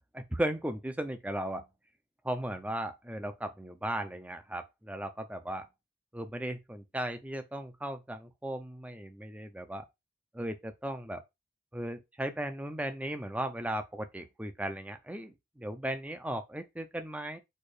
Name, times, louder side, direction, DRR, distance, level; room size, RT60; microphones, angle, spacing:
voice 1, 0.1-1.6 2.2-5.7 6.1-9.8 10.3-11.2 11.7-17.4, right 1 dB, 5° right, 0.5 m, -36 dB
4.4 x 2.5 x 4.8 m
head